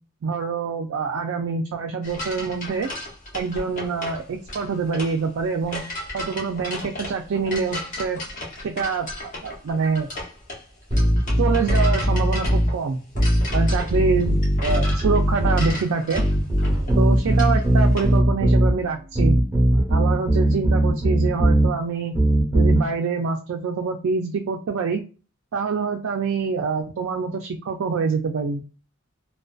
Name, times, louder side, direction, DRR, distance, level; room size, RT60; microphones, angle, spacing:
voice 1, 0.2-2.9 3.3-5.8 6.1-8.2 8.6-10.1 11.4-13.0 13.5-16.2 17.0-19.4 19.9-22.2 22.5-25.0 25.5-28.6, right 5 dB, 70° right, 3 dB, 0.3 m, -25 dB
sound 1, 2.0-18.1, left 1 dB, 35° left, 0.8 m, -35 dB
sound 2, 10.9-12.7 13.2-15.8 16.2-18.7 19.2-21.7 22.2-22.8, right 1 dB, 10° right, 0.8 m, -19 dB
2.4 x 2.2 x 2.3 m, 0.34 s
head